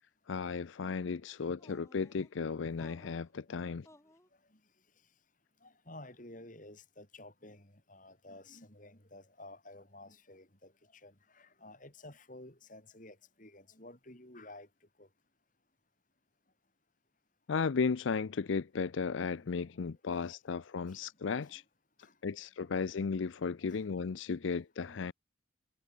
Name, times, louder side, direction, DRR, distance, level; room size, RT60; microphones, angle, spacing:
voice 1, 0.3-3.9 17.5-21.6 22.2-25.1, left 5 dB, 80° left, 0.5 m, -35 dB
sound 1, 1.6-2.3 2.8-3.3 3.8-4.3, left 1 dB, 15° left, 6.7 m, -59 dB
voice 2, 3.3-3.7 4.5-4.6 5.6-14.7 15.0-15.1 19.3-20.3 20.9-21.6 22.0-23.0 23.6-23.8 24.3-25.0, left 2 dB, 45° left, 6.4 m, -54 dB
head